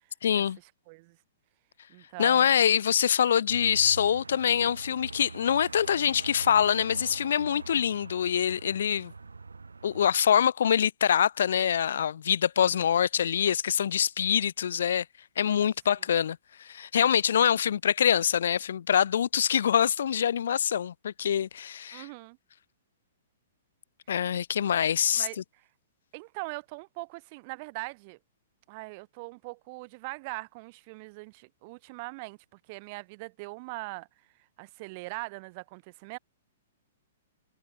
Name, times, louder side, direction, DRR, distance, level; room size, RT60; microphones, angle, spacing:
voice 1, 0.2-0.6 2.2-9.1 9.8-15.0 15.4-22.1 24.1-25.3, left 8 dB, 65° left, 0.3 m, -25 dB
voice 2, 0.9-1.2 1.9-2.5 12.6-12.8 21.9-22.4 25.1-25.6 26.1-28.2 28.7-34.1 34.6-36.2, right 27 dB, 40° right, 2.0 m, -41 dB
sound 1, 3.5-10.1, right 4 dB, 85° right, 1.8 m, -43 dB
figure-of-eight pair, 115°, 0 cm